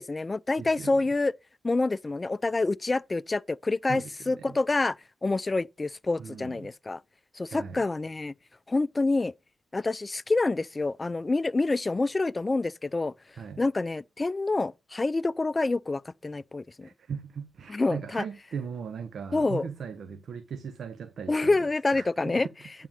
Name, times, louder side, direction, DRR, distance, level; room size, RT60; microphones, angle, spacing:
voice 1, 0.0-1.3 1.6-5.0 5.2-7.0 7.3-8.3 8.7-9.3 9.7-13.1 13.6-16.9 17.7-18.2 19.3-19.7 21.3-22.5, left 3 dB, 30° left, 0.4 m, -27 dB
voice 2, 0.6-1.0 3.9-4.6 6.2-6.7 7.5-7.9 13.4-13.6 16.8-22.7, right 6 dB, 65° right, 0.8 m, -39 dB
8.7 x 3.7 x 6.9 m
supercardioid pair, 50°, 0 cm